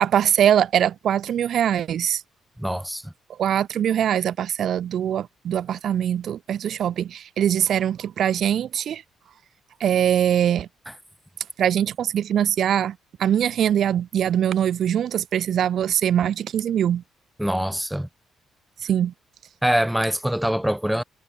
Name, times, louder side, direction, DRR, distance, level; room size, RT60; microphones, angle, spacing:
voice 1, 0.0-2.2 3.4-9.0 9.8-10.7 11.6-17.0 18.8-19.1, right 10 dB, 65° right, 1.4 m, -22 dB
voice 2, 2.6-3.1 17.4-18.1 19.6-21.0, equal, 5° right, 1.1 m, -24 dB
cardioid pair, 90°, 0 cm